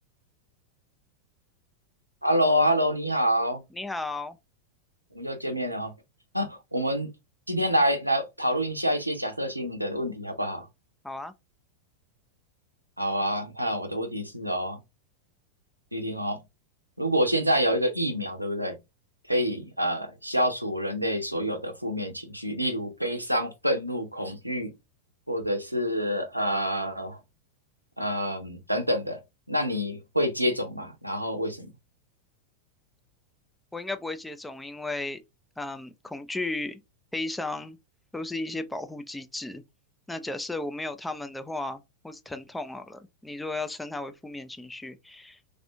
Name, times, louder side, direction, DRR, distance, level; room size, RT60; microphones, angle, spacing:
voice 1, 2.2-3.6 5.1-5.9 6.3-7.1 7.5-10.7 13.0-14.8 15.9-16.4 17.0-18.8 19.3-24.7 25.3-27.2 28.0-29.2 29.5-31.7, equal, 90° right, 0.6 m, -27 dB
voice 2, 3.7-4.4 11.0-11.3 33.7-35.2 35.6-36.8 37.1-37.8 38.1-39.6 40.1-45.6, left 2 dB, 5° left, 0.4 m, -35 dB
3.3 x 2.5 x 2.6 m
figure-of-eight pair, 90°, 0 cm